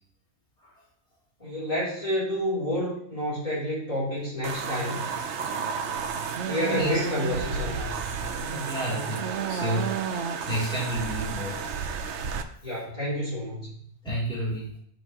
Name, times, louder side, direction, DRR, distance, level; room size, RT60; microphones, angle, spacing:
voice 1, 1.4-5.0 6.5-8.0 12.6-13.8, left 1 dB, 35° left, -8 dB, 3.2 m, -29 dB
sound 1, 4.4-12.4, right 6 dB, 85° right, 1.0 m, -31 dB
voice 2, 6.4-6.9 8.4-9.9 10.5-11.6 14.0-14.7, right 1 dB, 5° left, -9 dB, 2.7 m, -30 dB
12.5 x 4.6 x 2.9 m, 0.71 s
omnidirectional pair, 1.1 m